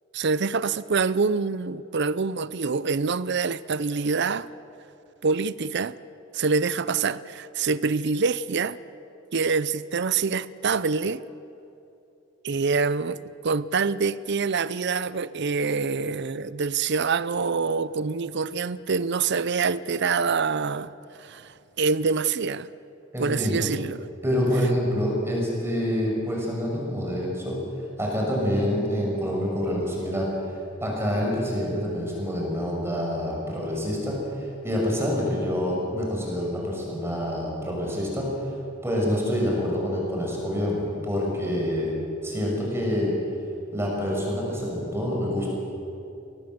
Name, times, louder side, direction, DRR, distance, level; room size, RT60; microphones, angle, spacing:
voice 1, 0.1-4.5 5.2-6.0 6.3-8.8 9.3-11.2 12.4-20.9 21.2-22.7 23.2-24.1, right 4 dB, 60° right, 17 dB, 0.6 m, -25 dB
voice 2, 23.1-23.7 24.2-27.6 28.0-38.5 38.8-42.0 42.2-43.2 43.7-45.5, equal, 15° right, -2 dB, 6.2 m, -27 dB
23.0 x 18.5 x 7.9 m, 2.8 s
head